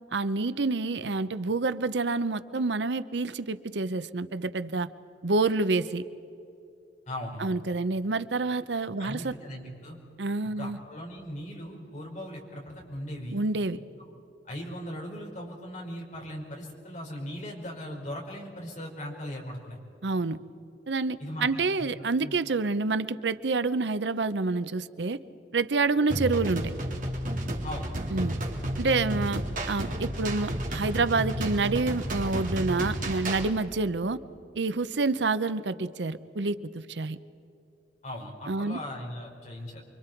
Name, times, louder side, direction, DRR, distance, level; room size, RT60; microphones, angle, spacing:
voice 1, 0.1-4.9 5.2-6.0 7.4-9.3 10.2-10.8 13.3-13.8 20.0-20.4 20.9-25.2 25.5-26.7 28.1-28.4 28.8-29.4 29.7-34.2 34.5-37.2 38.5-38.8, right 3 dB, 85° right, 14 dB, 0.7 m, -28 dB
voice 2, 7.1-7.4 9.0-10.0 10.6-13.4 14.4-19.8 21.2-21.9 22.2-22.4 27.6-27.9 38.0-39.8, equal, 45° left, -1 dB, 5.0 m, -39 dB
sound 1, 26.1-33.5, right 1 dB, 50° right, 3.0 m, -32 dB
29.0 x 24.0 x 4.6 m, 2.7 s
head